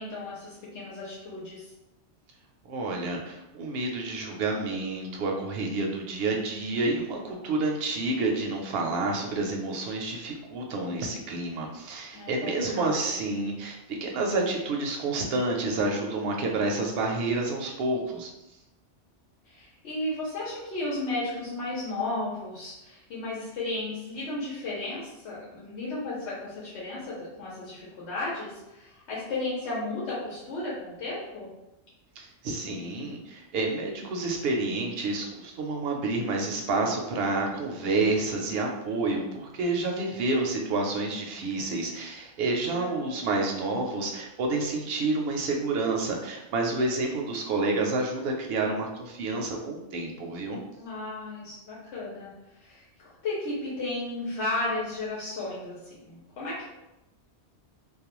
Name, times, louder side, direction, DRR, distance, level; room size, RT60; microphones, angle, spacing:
voice 1, 0.0-1.7 12.1-13.1 19.4-31.5 42.7-43.2 50.8-52.3 52.6-56.7, left 2 dB, 80° left, -7 dB, 1.0 m, -34 dB
voice 2, 2.7-18.3 32.2-50.6, right 2 dB, 65° right, 1 dB, 0.7 m, -29 dB
2.3 x 2.1 x 2.9 m, 0.95 s
omnidirectional pair, 1.2 m